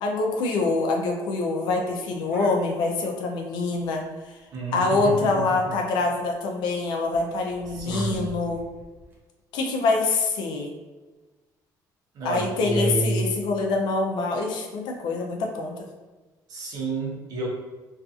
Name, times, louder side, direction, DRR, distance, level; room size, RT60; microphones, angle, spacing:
voice 1, 0.0-4.4 4.7-8.6 9.5-10.7 12.2-15.9, left 3 dB, 75° left, 2 dB, 0.5 m, -25 dB
sound 1, 1.7-3.0 3.4-3.5 3.7-4.1 4.4-4.6 4.9-5.0 5.6-6.2 7.1-9.1, right 1 dB, 25° right, 0.6 m, -44 dB
voice 2, 4.5-5.4 7.7-8.4 12.1-13.3 16.5-17.5, right 3 dB, 55° right, -3 dB, 0.8 m, -29 dB
2.6 x 2.4 x 2.4 m, 1.2 s
cardioid pair, 135°, 8 cm